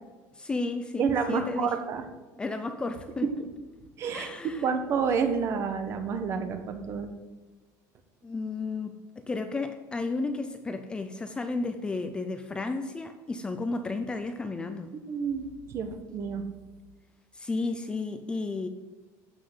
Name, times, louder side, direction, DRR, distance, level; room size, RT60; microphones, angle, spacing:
voice 1, 0.3-1.8 2.4-3.3 4.1-4.7 8.2-14.9 17.3-18.7, left 3 dB, 10° left, 8 dB, 0.6 m, -33 dB
voice 2, 1.0-2.0 3.2-3.5 4.0-7.1 15.0-16.5, right 6 dB, 35° right, 7 dB, 1.4 m, -29 dB
14.5 x 5.8 x 7.9 m, 1.3 s
cardioid pair, 175°, 8 cm